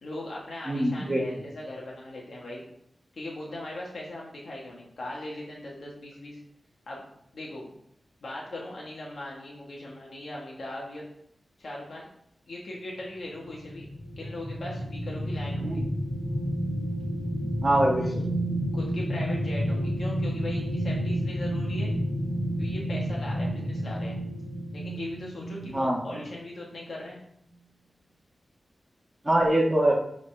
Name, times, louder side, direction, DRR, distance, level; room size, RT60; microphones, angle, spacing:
voice 1, 0.0-2.6 3.1-6.4 6.9-7.0 7.3-7.7 8.2-11.0 11.6-12.1 12.5-13.9 14.2-15.8 18.7-21.9 22.6-24.2 24.7-27.2, left 1 dB, 65° left, -3 dB, 1.5 m, -39 dB
voice 2, 0.6-1.4 15.6-15.8 17.6-18.2 25.7-26.0 29.2-29.9, right 1 dB, 20° right, -2 dB, 1.6 m, -24 dB
sound 1, 13.3-26.3 26.7-26.9, equal, 30° left, 1.7 m, -30 dB
10.5 x 4.1 x 3.4 m, 0.72 s
wide cardioid pair, 135°, 0 cm